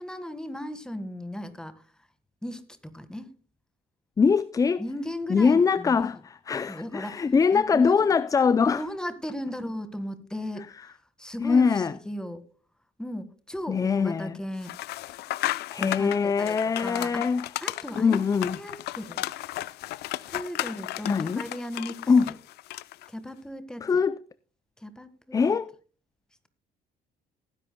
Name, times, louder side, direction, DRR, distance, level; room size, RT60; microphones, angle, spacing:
voice 1, 0.0-1.9 2.4-3.4 4.8-6.0 6.7-8.1 8.7-12.4 13.0-14.7 15.8-19.3 20.3-22.4 23.1-23.9 24.8-25.6, equal, 5° left, 1.6 m, -37 dB
voice 2, 4.2-4.8 5.3-8.8 11.4-11.9 13.7-14.3 15.7-17.4 18.0-18.6 21.1-21.4 22.1-22.3 23.8-24.2 25.3-25.7, left 5 dB, 20° left, 0.4 m, -22 dB
sound 1, 14.6-23.1, left 16 dB, 75° left, 0.6 m, -34 dB
19.0 x 10.5 x 2.2 m
cardioid pair, 110°, 17 cm